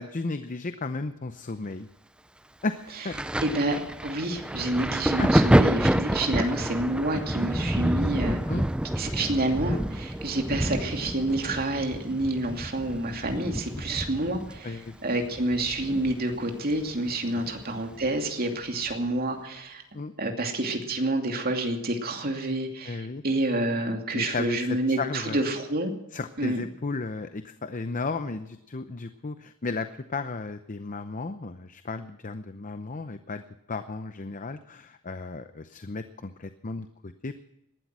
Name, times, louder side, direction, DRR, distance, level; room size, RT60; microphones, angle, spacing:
voice 1, 0.0-1.9 2.6-3.2 5.2-5.4 8.5-8.6 13.8-13.9 14.6-14.9 17.3-17.4 19.9-20.1 22.9-23.2 24.1-25.4 26.1-33.4 33.7-37.3, left 3 dB, 35° left, 10 dB, 0.7 m, -34 dB
Thunder, 3.1-16.5 16.7-18.1 18.9-19.1, equal, 5° right, 0.5 m, -28 dB
voice 2, 3.4-3.8 4.0-8.4 9.0-19.8 20.2-25.9 26.4-26.6, right 1 dB, 45° right, 3 dB, 2.6 m, -28 dB
19.0 x 12.5 x 6.2 m, 0.85 s
head